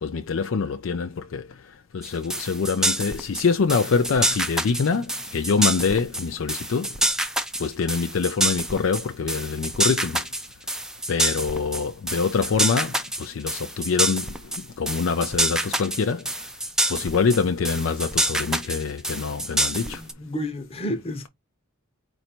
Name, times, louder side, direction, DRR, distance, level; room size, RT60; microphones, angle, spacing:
voice 1, 0.0-1.4 1.9-6.9 7.6-10.2 11.1-14.3 14.8-16.3 16.9-20.0, left 5 dB, 65° left, 0.4 m, -25 dB
sound 1, 2.0-20.1, right 1 dB, 5° right, 0.4 m, -27 dB
voice 2, 19.9-21.3, equal, 30° left, 1.0 m, -31 dB
4.4 x 2.6 x 4.3 m
head